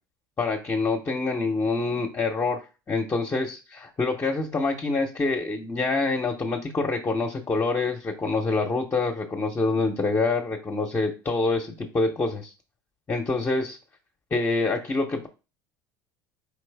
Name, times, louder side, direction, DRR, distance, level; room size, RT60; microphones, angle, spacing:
voice 1, 0.4-2.6 2.9-12.5 13.1-13.8 14.3-15.3, left 3 dB, 25° left, 0 dB, 0.9 m, -26 dB
4.8 x 3.1 x 3.4 m, 0.30 s
hypercardioid pair, 75°, 11 cm